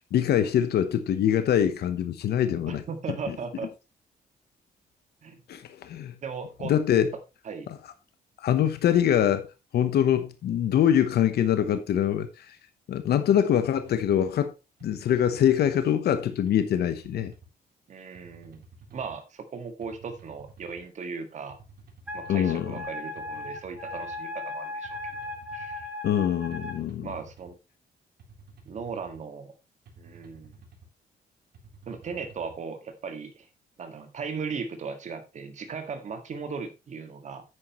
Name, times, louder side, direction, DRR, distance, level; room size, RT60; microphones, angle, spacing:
voice 1, 0.1-2.8 3.3-3.4 5.5-6.1 6.6-7.1 8.4-9.5 9.7-12.6 12.9-14.5 14.8-17.3 22.3-22.8 26.0-27.1, left 10 dB, 80° left, 1.0 m, -24 dB
voice 2, 2.7-3.7 5.2-5.4 6.2-6.7 7.4-7.7 17.9-18.6 18.9-21.6 22.1-25.9 27.0-27.6 28.7-29.5 30.0-30.6 31.9-33.5 33.8-37.4, right 5 dB, 45° right, 1.9 m, -37 dB
sound 1, 13.8-14.1 14.8-15.8 16.5-17.5 18.1-19.2 19.8-20.8 21.5-22.5 23.2-24.2 24.8-25.9 26.5-27.5 28.2-29.2 29.9-30.9 31.5-32.6, right 3 dB, 75° right, 3.8 m, -52 dB
Wind instrument woodwind instrument, 22.1-26.8, left 2 dB, 5° right, 2.2 m, -37 dB
9.8 x 9.3 x 3.1 m
wide cardioid pair, 165°, 16 cm